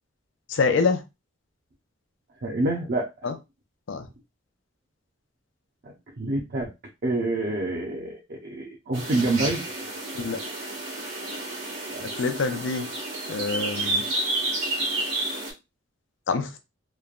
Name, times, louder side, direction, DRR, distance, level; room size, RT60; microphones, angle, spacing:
voice 1, 0.5-1.0 3.2-3.3 3.9-4.1 10.2-10.4 12.2-12.9 13.3-14.0 16.3-16.6, left 4 dB, 75° left, 0.5 m, -25 dB
voice 2, 2.4-3.1 6.2-6.7 7.0-9.6 11.9-12.0, right 2 dB, 50° right, 0.5 m, -27 dB
sound 1, 8.9-15.5, right 2 dB, 80° right, 1.3 m, -30 dB
3.1 x 2.1 x 2.3 m
head